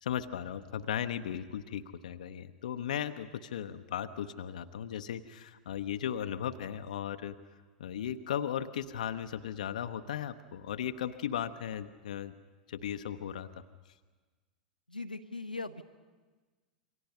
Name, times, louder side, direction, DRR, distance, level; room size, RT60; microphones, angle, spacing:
voice 1, 0.0-7.4 7.8-12.3 12.7-13.5, left 9 dB, 60° left, 9 dB, 0.8 m, -36 dB
voice 2, 14.9-15.8, left 3 dB, 90° left, 5 dB, 0.9 m, -39 dB
28.0 x 23.5 x 5.5 m, 1.3 s
figure-of-eight pair, 90°, 5 cm